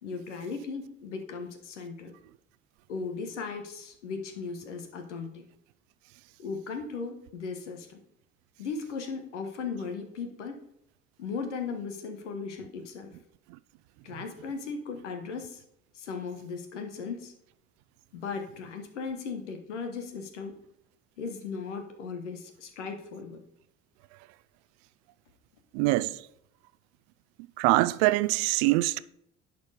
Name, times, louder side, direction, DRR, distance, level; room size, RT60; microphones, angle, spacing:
voice 1, 0.0-2.1 2.9-5.4 6.4-8.0 8.6-10.5 11.2-13.1 14.0-15.6 15.9-17.3 18.1-20.5 21.2-23.4, left 5 dB, 85° left, 1.1 m, -37 dB
voice 2, 25.7-26.2 27.6-29.0, right 19 dB, 70° right, 0.5 m, -24 dB
10.5 x 4.4 x 5.0 m
hypercardioid pair, 55°, 35 cm